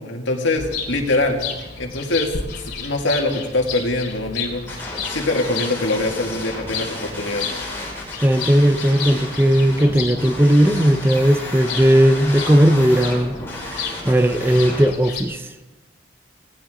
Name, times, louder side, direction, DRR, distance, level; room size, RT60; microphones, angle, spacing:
voice 1, 0.0-1.4 1.8-7.5, left 2 dB, 75° left, 2 dB, 2.2 m, -23 dB
sound 1, 0.6-15.2, left 5 dB, 55° left, 2.7 m, -33 dB
sound 2, 4.7-14.9, left 2 dB, 10° left, 4.8 m, -33 dB
voice 2, 8.2-15.5, equal, 10° right, 9 dB, 0.5 m, -17 dB
18.0 x 16.5 x 3.8 m, 1.1 s
head